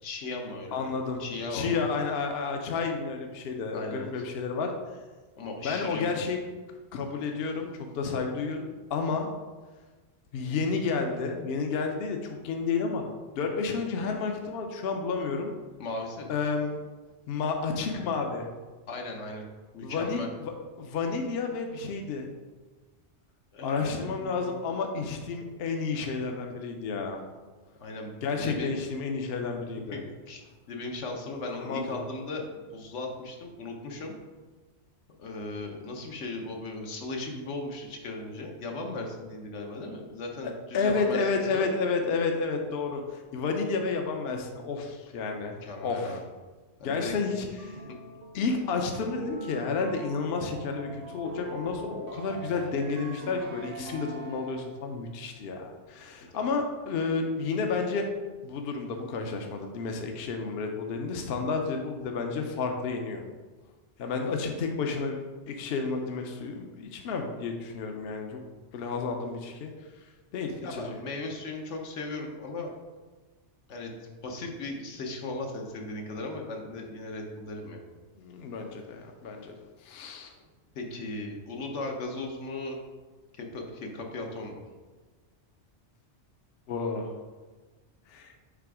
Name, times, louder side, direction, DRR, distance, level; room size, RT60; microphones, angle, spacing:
voice 1, 0.0-0.9 1.2-2.0 3.7-4.1 5.4-6.2 15.8-16.3 18.9-19.5 19.7-20.3 23.5-24.6 27.8-28.1 28.4-28.7 29.9-30.0 30.3-30.4 30.7-34.1 35.2-41.7 45.6-46.2 46.8-47.1 70.6-72.7 73.7-77.8 80.7-82.8 83.3-84.6, left 2 dB, 80° left, 2 dB, 1.2 m, -37 dB
voice 2, 0.7-1.2 1.5-4.7 5.6-6.4 6.9-9.3 10.3-13.1 13.4-15.5 16.3-16.7 17.3-18.5 19.8-20.5 20.8-22.3 23.6-27.2 28.2-30.0 31.5-32.0 40.7-46.2 46.8-47.8 48.3-58.1 58.4-63.2 64.0-65.2 65.5-68.4 68.7-69.7 70.3-71.0 78.2-79.5 79.8-80.3 86.7-87.1 88.1-88.3, left 4 dB, 65° left, 3 dB, 0.8 m, -31 dB
sound 1, 47.6-54.9, right 3 dB, 55° right, 0.8 m, -42 dB
5.9 x 3.4 x 4.8 m, 1.3 s
omnidirectional pair, 1.2 m